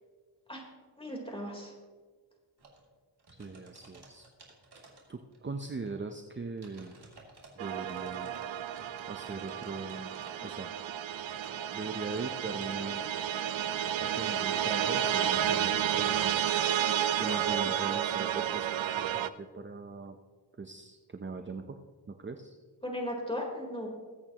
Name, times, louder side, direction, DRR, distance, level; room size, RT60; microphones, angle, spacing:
voice 1, 1.0-1.7 22.8-23.9, left 1 dB, 10° left, -1 dB, 3.8 m, -36 dB
sound 1, 2.6-2.8 3.2-5.5 5.9-6.0 6.6-7.5 7.8-10.5 11.1-12.9 13.6-16.2 17.3-17.4, right 3 dB, 60° right, 3.0 m, -53 dB
voice 2, 3.4-4.3 5.1-6.9 7.6-8.3 9.1-10.1 10.4-10.7 11.7-13.0 14.0-16.3 17.2-20.2 20.6-21.8 22.1-22.6, right 3 dB, 25° right, 6 dB, 0.7 m, -40 dB
sound 2, 7.6-19.3, right 10 dB, 85° right, 0.6 m, -31 dB
21.0 x 8.5 x 3.0 m, 1.5 s
cardioid pair, 60°, 45 cm